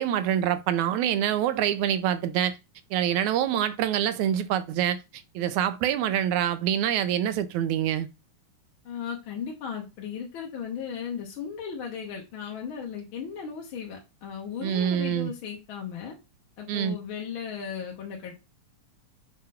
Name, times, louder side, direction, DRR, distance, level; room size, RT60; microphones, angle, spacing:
voice 1, 0.0-2.6 2.9-8.1 14.6-15.3 16.7-17.0, right 10 dB, 80° right, 1.9 m, -26 dB
voice 2, 8.9-16.1 16.6-18.3, left 7 dB, 50° left, 1.8 m, -36 dB
7.7 x 3.0 x 5.6 m
omnidirectional pair, 3.6 m